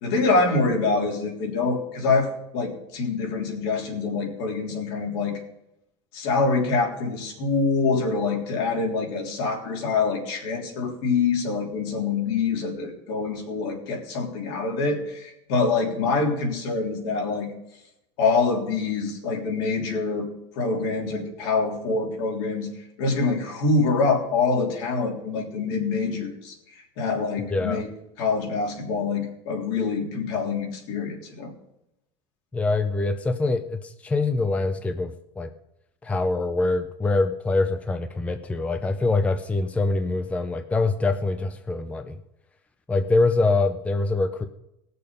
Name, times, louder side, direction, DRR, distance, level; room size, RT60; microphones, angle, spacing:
voice 1, 0.0-5.4 6.1-17.5 18.2-20.3 20.5-22.7 23.0-27.9 28.2-31.5, left 4 dB, 70° left, 0 dB, 3.4 m, -25 dB
voice 2, 27.5-27.8 32.5-35.5 36.0-42.2 42.9-44.5, left 3 dB, 10° left, 8 dB, 0.5 m, -24 dB
18.5 x 6.8 x 5.2 m, 0.84 s
cardioid pair, 150°, 14 cm